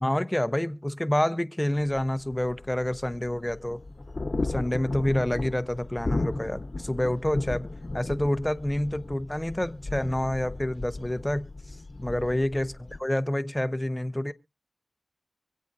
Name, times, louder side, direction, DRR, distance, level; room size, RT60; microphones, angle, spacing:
voice 1, 0.0-3.8 4.4-7.7 7.9-11.5 12.0-14.3, left 1 dB, 15° left, 0.6 m, -28 dB
sound 1, 1.8-13.0, left 2 dB, 60° left, 1.0 m, -35 dB
25.0 x 8.4 x 2.6 m
cardioid pair, 40°, 0 cm